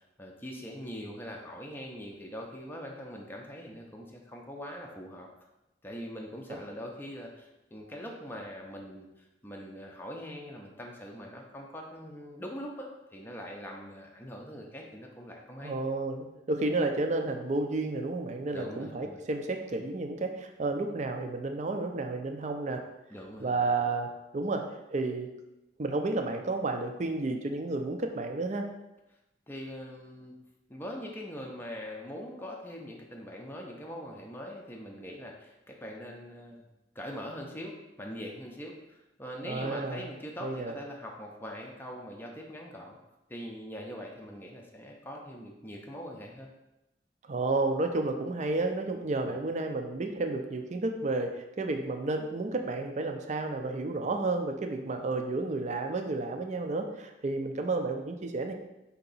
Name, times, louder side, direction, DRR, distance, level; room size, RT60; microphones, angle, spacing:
voice 1, 0.0-5.3 5.8-15.7 18.5-19.2 23.1-23.8 29.5-30.4 30.7-36.7 36.9-43.0 43.3-46.5 49.2-49.4, equal, 10° left, -1 dB, 0.5 m, -42 dB
voice 2, 15.6-22.8 23.4-24.6 24.9-25.3 25.8-28.7 39.4-40.1 40.4-40.8 47.3-58.5, right 2 dB, 40° right, 5 dB, 0.4 m, -31 dB
4.5 x 2.8 x 4.0 m, 0.95 s
head